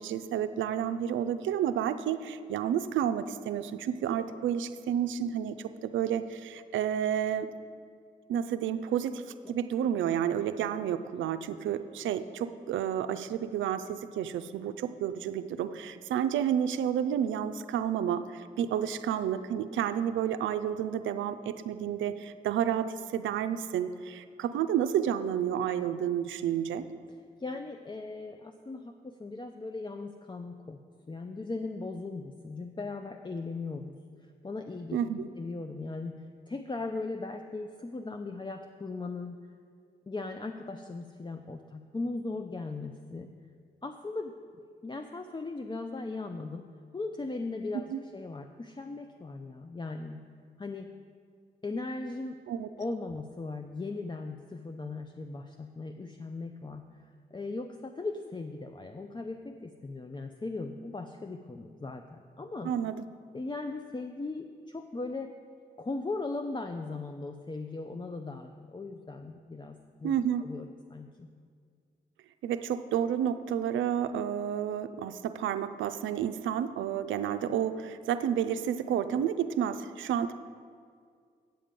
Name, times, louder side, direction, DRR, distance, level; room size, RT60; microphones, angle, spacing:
voice 1, 0.0-7.5 8.3-26.9 34.9-35.3 47.9-48.0 52.5-52.7 62.6-63.1 70.0-70.5 72.4-80.3, right 9 dB, 80° right, 11 dB, 0.4 m, -30 dB
voice 2, 27.4-30.8 31.1-34.0 34.2-35.0 35.4-36.2 36.5-39.4 40.1-43.3 43.8-44.3 44.8-46.6 46.9-50.2 50.6-50.9 51.6-52.4 52.8-62.7 63.3-65.3 65.8-71.3, left 3 dB, 25° left, 6 dB, 0.5 m, -38 dB
8.9 x 7.4 x 5.2 m, 2.1 s
supercardioid pair, 45°, 19 cm